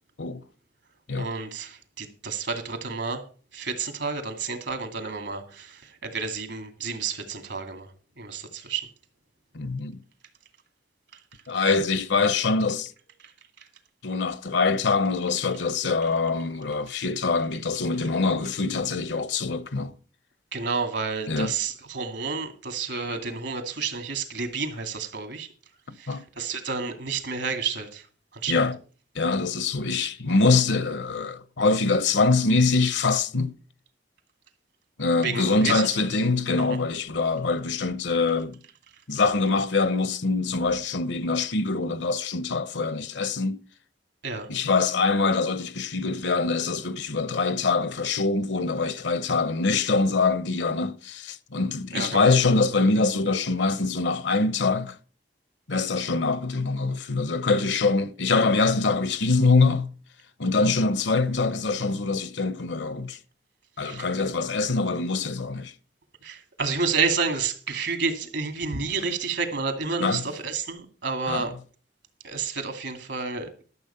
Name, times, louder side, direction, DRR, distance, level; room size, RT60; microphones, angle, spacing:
voice 1, 1.1-3.2 3.5-7.9 8.2-8.9 20.5-25.5 26.0-28.0 28.3-28.7 35.2-36.1 44.2-44.5 51.9-52.3 63.8-64.1 66.2-71.5 72.2-73.5, right 5 dB, 75° right, 2.3 m, -30 dB
voice 2, 9.5-10.0 11.5-12.9 14.0-19.9 21.3-21.5 26.1-26.2 28.5-28.8 29.1-33.6 35.0-38.6 39.1-43.6 44.5-55.0 55.7-59.9 60.4-63.2 63.8-65.7 70.0-70.2 71.3-71.5, left 3 dB, 75° left, 0.9 m, -24 dB
12.5 x 7.1 x 5.7 m
head